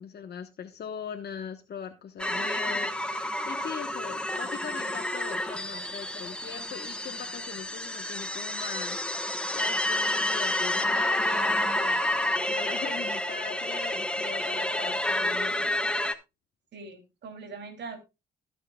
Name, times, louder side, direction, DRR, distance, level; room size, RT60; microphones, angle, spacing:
voice 1, 0.0-15.7, left 7 dB, 55° left, 7 dB, 1.1 m, -41 dB
sound 1, 2.2-16.1, left 1 dB, 5° left, 1.2 m, -29 dB
voice 2, 16.7-18.0, right 4 dB, 60° right, 6 dB, 2.9 m, -41 dB
20.0 x 6.7 x 2.3 m, 0.25 s
cardioid pair, 90°, 20 cm